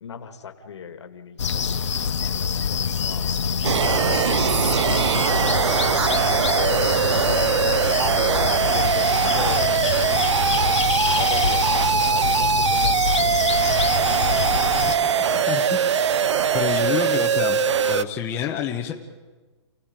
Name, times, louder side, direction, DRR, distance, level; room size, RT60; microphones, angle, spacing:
voice 1, 0.0-3.4 4.6-5.1 5.4-8.0 8.7-10.0 10.5-13.7 14.9-15.3, left 6 dB, 70° left, 6 dB, 2.4 m, -38 dB
sound 1, 1.4-15.0, left 6 dB, 90° left, 1.3 m, -25 dB
sound 2, 3.6-18.0, right 8 dB, 75° right, 0.7 m, -21 dB
Cough, 4.7-5.1 5.4-6.4 7.1-7.7 8.9-9.2, right 6 dB, 45° right, 4.0 m, -43 dB
voice 2, 14.7-15.1 15.5-15.9 16.5-17.6 17.9-18.9, left 9 dB, 15° left, 0 dB, 1.2 m, -28 dB
29.0 x 16.5 x 9.1 m, 1.3 s
hypercardioid pair, 165°, 15 cm